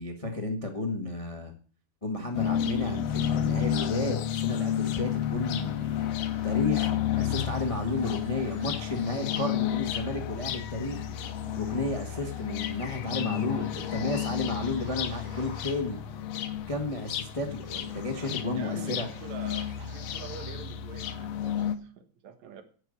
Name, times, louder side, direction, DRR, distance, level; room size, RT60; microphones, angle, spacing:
voice 1, 0.0-1.5 2.0-5.9 6.4-11.0 11.5-16.0 16.7-19.1, left 2 dB, 25° left, 4 dB, 0.6 m, -32 dB
sound 1, 2.3-21.8, left 10 dB, 70° left, 1.7 m, -31 dB
sound 2, 4.0-20.5, right 3 dB, 90° right, 4.5 m, -52 dB
voice 2, 18.5-22.6, right 6 dB, 65° right, 8 dB, 2.5 m, -45 dB
10.5 x 6.9 x 7.9 m, 0.43 s
omnidirectional pair, 3.6 m